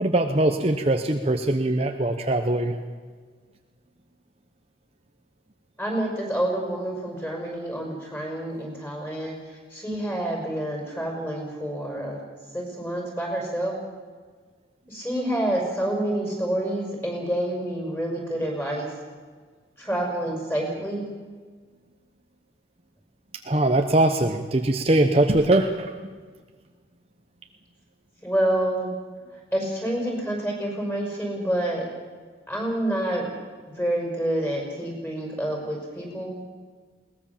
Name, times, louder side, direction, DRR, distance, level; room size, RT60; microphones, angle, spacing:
voice 1, 0.0-2.8 23.4-25.9, right 1 dB, 35° right, 5 dB, 0.9 m, -21 dB
voice 2, 5.8-12.2 12.5-13.8 14.9-18.9 19.8-21.1 28.2-28.9 29.5-31.9 32.5-33.3 33.8-36.4, right 1 dB, 10° left, 0 dB, 5.9 m, -28 dB
21.0 x 19.0 x 7.4 m, 1.5 s
head